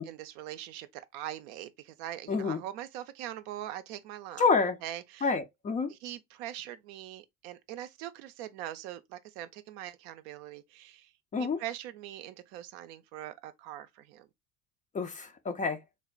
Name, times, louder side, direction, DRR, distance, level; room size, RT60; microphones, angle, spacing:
voice 1, 0.0-4.4 4.8-5.3 5.9-11.1 11.4-14.3, right 12 dB, 60° right, 0.5 m, -42 dB
voice 2, 2.3-2.6 4.4-4.8 5.2-5.9 11.3-11.6 14.9-15.8, left 4 dB, 20° left, 0.4 m, -28 dB
3.3 x 2.1 x 2.3 m
hypercardioid pair, 70°, 39 cm